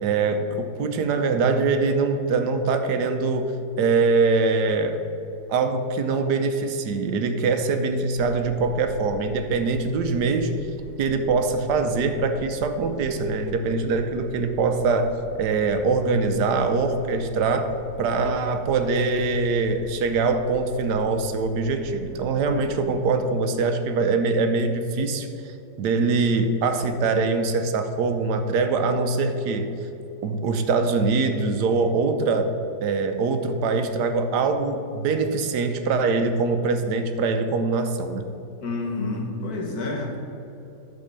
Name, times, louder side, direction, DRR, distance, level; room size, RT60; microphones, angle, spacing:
voice 1, 0.0-5.0 5.5-10.5 11.0-29.7 30.2-38.3, right 4 dB, 75° right, 8 dB, 1.2 m, -23 dB
sound 1, 8.2-22.9, right 5 dB, 60° right, 1.0 m, -43 dB
voice 2, 38.6-40.2, left 2 dB, 60° left, 0 dB, 1.8 m, -29 dB
10.5 x 4.2 x 6.7 m, 2.9 s
omnidirectional pair, 1.8 m